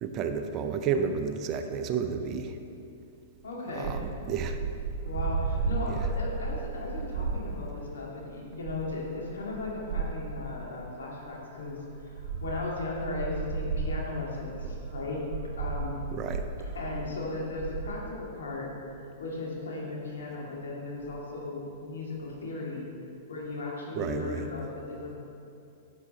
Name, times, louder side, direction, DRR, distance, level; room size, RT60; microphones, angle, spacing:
voice 1, 0.0-2.6 3.7-4.0 4.3-4.6 5.9-6.0 16.1-16.4 24.0-24.4, right 6 dB, 35° right, 7 dB, 0.6 m, -31 dB
voice 2, 3.4-3.9 5.0-15.3 15.6-16.0 16.7-22.8 23.3-25.2, left 3 dB, 75° left, -3 dB, 2.0 m, -36 dB
sound 1, 3.8-8.0 8.5-10.5 11.3-11.4 11.6-18.0, right 4 dB, 55° right, 0.9 m, -34 dB
8.5 x 6.5 x 4.1 m, 2.6 s
hypercardioid pair, 110°, 0 cm